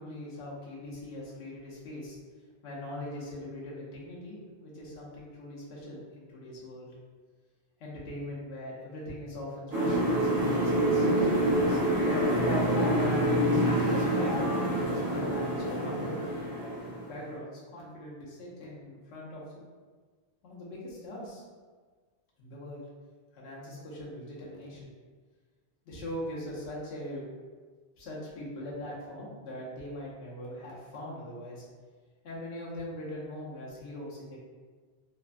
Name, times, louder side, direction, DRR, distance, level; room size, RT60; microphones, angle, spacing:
voice 1, 0.0-2.2 2.6-6.9 7.8-11.8 12.4-16.2 17.0-19.6 20.4-21.4 22.4-22.8 23.3-24.9 25.9-27.3 28.0-31.6 32.2-34.4, left 1 dB, 75° left, -6 dB, 0.9 m, -41 dB
sound 1, 9.7-17.3, right 1 dB, 70° right, 1.3 m, -27 dB
3.2 x 2.1 x 2.4 m, 1.5 s
omnidirectional pair, 1.1 m